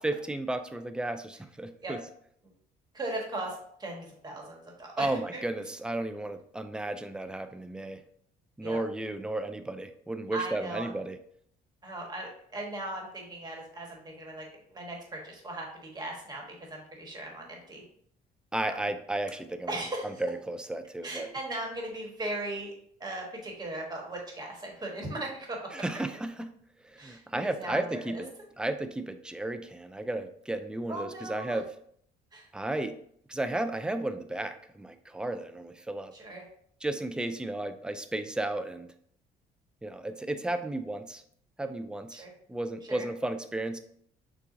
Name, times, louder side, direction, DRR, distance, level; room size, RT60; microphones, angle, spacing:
voice 1, 0.0-2.0 5.0-8.0 8.6-11.2 18.5-19.7 20.2-21.3 25.7-26.5 26.8-28.3 28.6-31.7 32.5-33.0 33.3-36.1 36.8-38.9 39.8-41.2 41.6-43.8, right 2 dB, 5° right, 9 dB, 0.3 m, -33 dB
voice 2, 2.9-5.4 8.6-8.8 10.3-10.9 11.8-14.4 14.7-17.8 18.6-18.7 19.7-20.2 21.0-22.7 23.0-25.6 27.0-28.2 30.9-31.6 32.3-32.5 36.1-36.4 42.1-42.3 42.9-43.1, right 1 dB, 25° right, 0 dB, 1.3 m, -38 dB
6.7 x 2.4 x 2.6 m, 0.65 s
cardioid pair, 110°, 17 cm